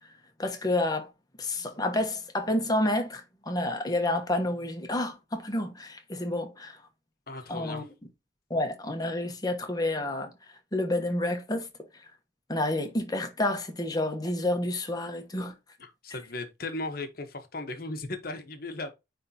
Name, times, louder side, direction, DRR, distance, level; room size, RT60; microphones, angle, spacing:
voice 1, 0.4-1.1 1.4-6.8 7.5-7.8 8.5-10.3 10.7-11.7 12.5-15.6, left 1 dB, 20° left, 1.1 m, -29 dB
voice 2, 7.3-7.9 15.8-18.9, left 2 dB, 50° left, 1.1 m, -37 dB
9.5 x 3.5 x 2.9 m
head